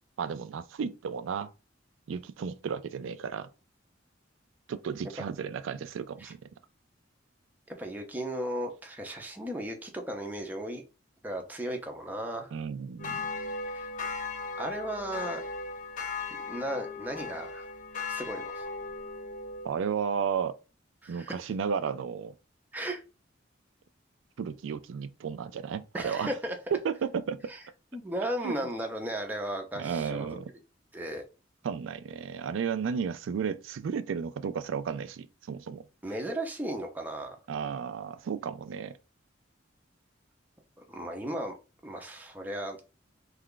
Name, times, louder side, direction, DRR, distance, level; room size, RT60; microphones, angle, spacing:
voice 1, 0.2-1.5 2.1-3.5 4.7-6.4 12.5-13.2 19.6-20.6 21.1-22.3 24.4-26.3 26.7-27.5 28.4-28.5 29.8-30.5 31.6-35.9 37.5-39.0, right 6 dB, 85° right, 0.3 m, -33 dB
voice 2, 7.7-10.8 11.2-12.5 13.7-13.9 14.6-15.4 16.4-17.7 18.1-18.7 21.0-21.4 22.7-23.0 25.9-26.6 27.5-27.6 27.9-30.4 30.9-31.2 36.0-37.4 40.8-41.5 41.8-42.8, right 1 dB, 10° right, 0.6 m, -35 dB
sound 1, 13.0-19.7, left 4 dB, 40° left, 0.5 m, -37 dB
3.3 x 2.4 x 3.7 m
head